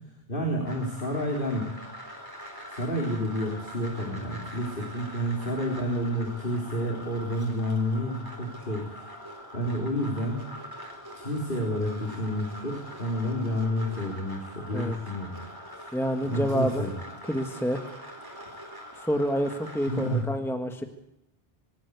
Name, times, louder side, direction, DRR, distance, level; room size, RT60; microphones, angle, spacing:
voice 1, 0.3-1.7 2.7-8.9 9.5-10.4 11.2-15.3 16.2-16.9 19.9-20.3, equal, 60° left, 0 dB, 4.0 m, -29 dB
sound 1, 0.7-20.2, equal, 20° right, 4.4 m, -43 dB
voice 2, 15.9-16.9 17.3-17.8 18.9-20.8, equal, ahead, 5 dB, 1.6 m, -28 dB
25.0 x 14.0 x 8.2 m, 0.83 s
omnidirectional pair, 1.0 m